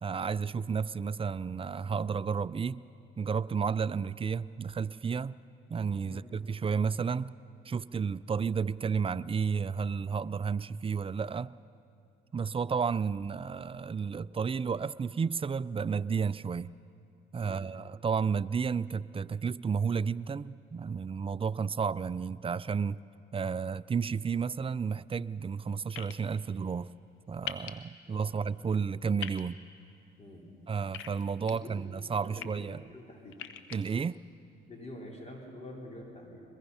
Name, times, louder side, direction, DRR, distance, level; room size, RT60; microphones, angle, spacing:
voice 1, 0.0-2.8 3.2-5.4 5.7-7.3 7.7-11.5 12.3-16.7 17.3-23.0 23.3-26.9 27.3-29.6 30.7-32.8 33.7-34.2, right 6 dB, 30° right, 17 dB, 0.4 m, -32 dB
sound 1, 25.9-26.1 27.5-27.7 29.2-29.4 30.9-31.5 32.2-32.5 33.3-33.8, left 12 dB, 80° left, 0.9 m, -39 dB
voice 2, 31.5-33.3 34.7-36.4, left 1 dB, 35° left, -1 dB, 4.0 m, -47 dB
22.0 x 22.0 x 5.6 m, 2.6 s
supercardioid pair, 70°, 20 cm